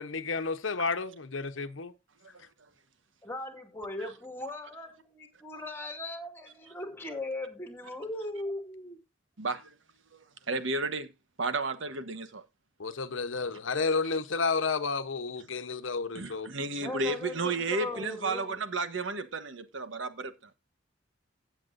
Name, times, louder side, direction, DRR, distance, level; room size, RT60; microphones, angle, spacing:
voice 1, 0.0-1.9 12.8-16.5, left 4 dB, 80° left, 1.0 m, -31 dB
voice 2, 3.2-9.0 13.4-13.6 16.8-18.6, left 2 dB, 10° left, 2.2 m, -39 dB
voice 3, 9.4-9.7 10.1-10.2 10.5-11.1 11.4-12.4 16.1-20.5, right 3 dB, 75° right, 1.2 m, -32 dB
17.0 x 7.2 x 2.6 m
head